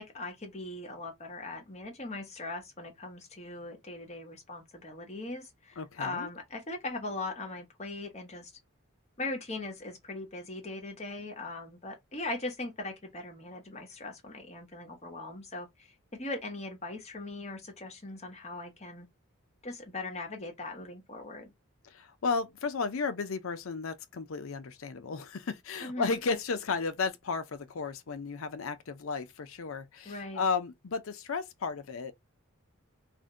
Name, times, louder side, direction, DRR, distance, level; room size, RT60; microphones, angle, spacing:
voice 1, 0.0-8.5 9.2-19.1 19.6-21.5 25.8-26.2 30.0-30.5, left 2 dB, 30° left, 0.9 m, -40 dB
voice 2, 5.8-6.3 21.8-32.1, left 4 dB, 70° left, 0.5 m, -34 dB
2.5 x 2.1 x 3.6 m
head